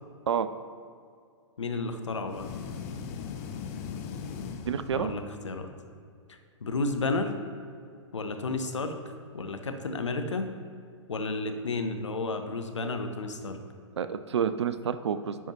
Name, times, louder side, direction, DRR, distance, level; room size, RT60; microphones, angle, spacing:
voice 1, 1.6-2.5 4.9-5.7 6.6-7.3 8.1-8.9 9.3-10.5 11.1-13.6, left 3 dB, 70° left, 6 dB, 0.7 m, -32 dB
sound 1, 2.3-5.4, left 6 dB, 30° left, 0.4 m, -39 dB
voice 2, 4.6-5.1 14.0-15.4, right 8 dB, 60° right, 12 dB, 0.4 m, -28 dB
10.0 x 4.4 x 2.9 m, 2.2 s
figure-of-eight pair, 115°, 16 cm